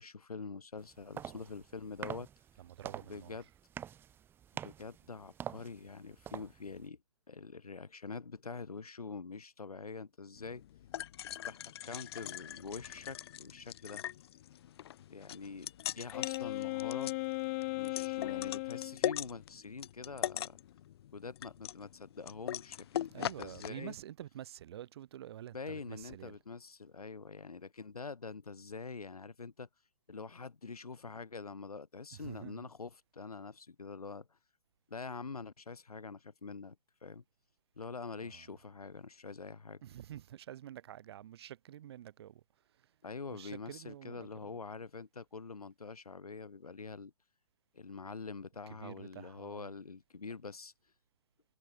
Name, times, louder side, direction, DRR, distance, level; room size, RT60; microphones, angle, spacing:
voice 1, 0.0-2.3 3.1-3.5 4.6-7.0 7.3-10.6 11.5-14.0 15.1-17.1 17.8-20.6 21.1-24.0 25.5-29.7 30.1-34.4 34.9-36.8 37.0-37.2 37.8-39.8 43.0-47.1 47.7-50.7, left 4 dB, 75° left, 5.5 m, -45 dB
sound 1, 0.8-6.9, right 9 dB, 10° right, 1.3 m, -47 dB
voice 2, 2.6-3.4 23.1-26.4 32.1-32.7 38.2-38.4 39.8-42.4 43.3-44.3 48.8-49.7, right 11 dB, 40° right, 5.3 m, -48 dB
sound 2, 10.4-23.7, left 12 dB, 40° left, 5.8 m, -41 dB
Wind instrument woodwind instrument, 16.1-19.0, left 25 dB, 25° left, 1.6 m, -37 dB
figure-of-eight pair, 140°, 19 cm